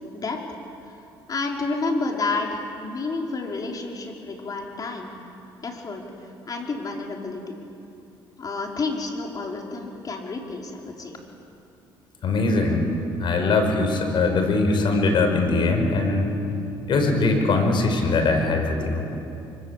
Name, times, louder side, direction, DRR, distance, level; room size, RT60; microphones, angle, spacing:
voice 1, 1.3-5.1 5.6-6.0 6.5-7.6 8.4-11.2, left 3 dB, 40° left, 1 dB, 4.9 m, -30 dB
voice 2, 12.2-12.9 13.2-16.3 16.9-19.1, left 3 dB, 55° left, 5 dB, 5.4 m, -21 dB
25.5 x 24.5 x 8.4 m, 2.7 s
cardioid pair, 85°, 10 cm